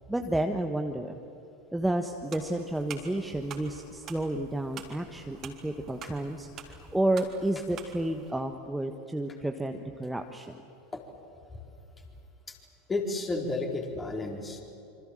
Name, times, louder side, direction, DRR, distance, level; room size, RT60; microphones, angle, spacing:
voice 1, 0.1-1.2 1.7-10.6, right 1 dB, 5° right, 5 dB, 1.5 m, -31 dB
sound 1, 2.3-8.3, right 7 dB, 40° right, 3.5 m, -47 dB
voice 2, 12.9-14.6, left 2 dB, 20° left, 2 dB, 4.6 m, -32 dB
27.0 x 26.0 x 7.8 m, 2.9 s
figure-of-eight pair, 80°, 0 cm